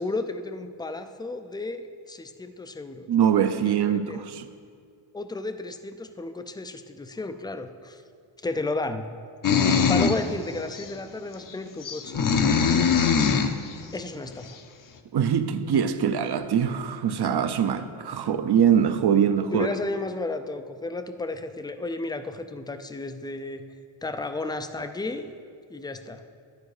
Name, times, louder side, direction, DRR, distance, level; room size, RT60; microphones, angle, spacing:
voice 1, 0.0-3.1 3.8-4.2 5.1-8.0 8.4-9.1 9.7-12.2 13.2-13.5 13.9-14.6 19.5-23.6 24.0-25.3 25.7-26.2, left 2 dB, 10° left, 9 dB, 0.3 m, -33 dB
voice 2, 3.1-4.5 15.1-19.7, right 8 dB, 50° right, 10 dB, 0.7 m, -23 dB
sound 1, 9.4-10.2 10.8-10.9 11.8-13.6, left 6 dB, 40° left, 0.7 m, -21 dB
11.5 x 9.4 x 4.9 m, 2.3 s
wide cardioid pair, 140°, 50 cm